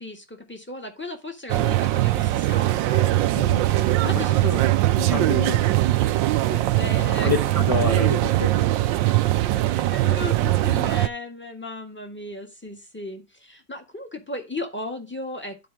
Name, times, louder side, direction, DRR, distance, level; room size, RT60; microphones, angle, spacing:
voice 1, 0.0-4.3 5.1-5.4 6.5-7.3 9.7-15.7, left 2 dB, 5° left, 1.5 m, -36 dB
sound 1, 1.5-11.1, right 15 dB, 85° right, 1.3 m, -21 dB
voice 2, 3.3-3.7 4.0-4.6 5.0-6.2 7.2-9.2, left 4 dB, 35° left, 0.6 m, -29 dB
12.0 x 4.7 x 3.4 m
omnidirectional pair, 2.0 m